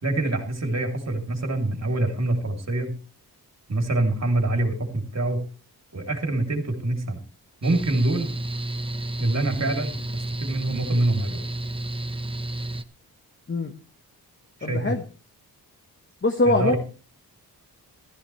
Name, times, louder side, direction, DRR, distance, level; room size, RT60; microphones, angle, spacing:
voice 1, 0.0-2.9 3.7-5.4 5.9-7.2 7.6-8.3 9.2-11.4 14.6-15.0 16.4-16.8, right 2 dB, 45° right, 4 dB, 3.0 m, -25 dB
Mechanical fan, 7.6-12.8, right 1 dB, 15° right, 0.8 m, -31 dB
voice 2, 14.6-15.0 16.2-16.8, left 2 dB, 30° left, 6 dB, 1.3 m, -22 dB
15.0 x 13.5 x 3.2 m, 0.37 s
cardioid pair, 85°, 38 cm